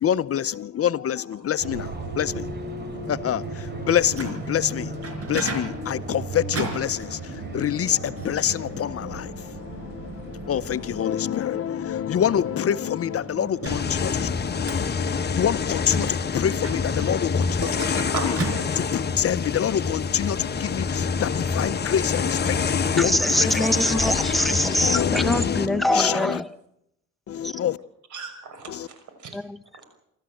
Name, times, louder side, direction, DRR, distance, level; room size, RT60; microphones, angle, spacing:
voice 1, 0.0-2.5 2.8-14.3 15.3-17.7 18.2-18.4 18.7-23.6 24.2-24.3 24.8-26.4 27.3-27.8 28.7-28.9, left 9 dB, 50° left, 0.7 m, -26 dB
sound 1, 1.6-11.1, right 3 dB, 35° right, 3.2 m, -36 dB
Microwave oven, 3.8-19.2, right 3 dB, 50° right, 5.2 m, -38 dB
sound 2, 13.7-25.7, left 5 dB, 35° left, 1.2 m, -26 dB
voice 2, 17.6-18.3 28.1-29.4, right 5 dB, 75° right, 6.0 m, -35 dB
voice 3, 23.0-26.5 27.4-27.6 29.3-29.6, left 1 dB, ahead, 1.1 m, -23 dB
26.5 x 13.5 x 7.8 m
cardioid pair, 90°, 30 cm